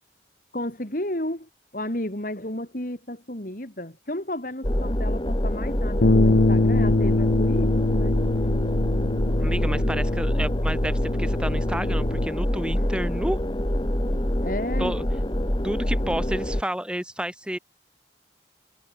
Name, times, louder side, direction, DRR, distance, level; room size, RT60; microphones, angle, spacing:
voice 1, 0.5-8.2 12.5-13.0 14.4-14.9, left 1 dB, 45° left, 3.2 m, -32 dB
sound 1, 4.6-16.6, equal, 25° left, 1.8 m, -25 dB
sound 2, 6.0-12.3, left 2 dB, 70° left, 0.8 m, -24 dB
voice 2, 9.4-13.4 14.8-15.0 15.6-17.6, equal, 5° right, 3.1 m, -30 dB
head